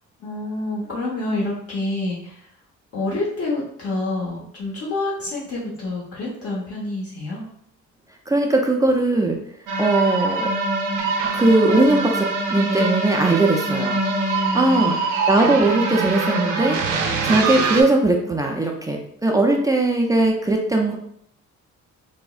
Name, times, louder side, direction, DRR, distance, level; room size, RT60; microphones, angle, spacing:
voice 1, 0.2-2.5 2.9-7.4 14.3-15.1, left 2 dB, 50° left, -6 dB, 0.9 m, -28 dB
voice 2, 8.3-9.4 9.8-10.5 11.3-14.0 14.5-15.0 15.3-16.8 17.2-21.0, right 2 dB, 10° right, 0 dB, 0.4 m, -19 dB
sound 1, 9.7-17.8, right 3 dB, 80° right, 0.6 m, -23 dB
3.5 x 2.0 x 2.4 m, 0.69 s
cardioid pair, 90°, 30 cm